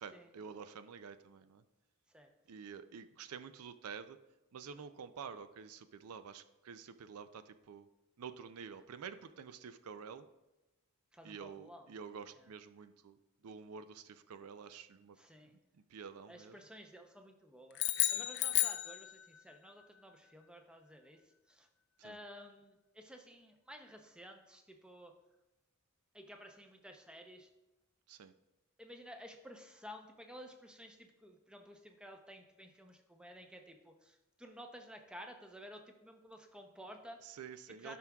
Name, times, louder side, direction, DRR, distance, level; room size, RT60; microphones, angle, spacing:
voice 1, 0.0-1.6 2.5-4.2 4.5-7.9 8.2-10.3 11.2-13.2 13.4-15.2 15.9-16.6 18.0-18.3 22.0-22.2 28.1-28.3 37.2-38.0, right 6 dB, 80° right, 12 dB, 0.4 m, -49 dB
voice 2, 11.1-11.9 12.3-12.5 15.2-15.6 16.3-21.2 21.5-21.7 22.0-25.2 26.1-27.5 28.8-37.4 37.7-38.0, equal, 5° right, 4 dB, 0.6 m, -53 dB
sound 1, 17.7-19.5, left 15 dB, 50° left, 0.4 m, -33 dB
13.0 x 5.9 x 2.3 m, 1.0 s
head